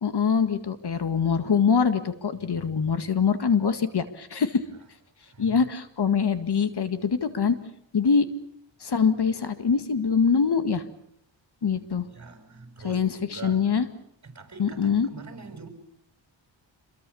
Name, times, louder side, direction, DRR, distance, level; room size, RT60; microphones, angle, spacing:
voice 1, 0.0-4.6 5.4-7.6 7.9-8.3 8.8-10.8 11.6-12.1 12.8-13.9 14.6-15.1, left 6 dB, 55° left, 10 dB, 2.0 m, -24 dB
voice 2, 2.4-3.1 5.2-5.7 12.1-13.7 14.2-15.7, right 4 dB, 35° right, 6 dB, 7.1 m, -44 dB
27.0 x 22.5 x 7.1 m, 0.73 s
cardioid pair, 85°, 46 cm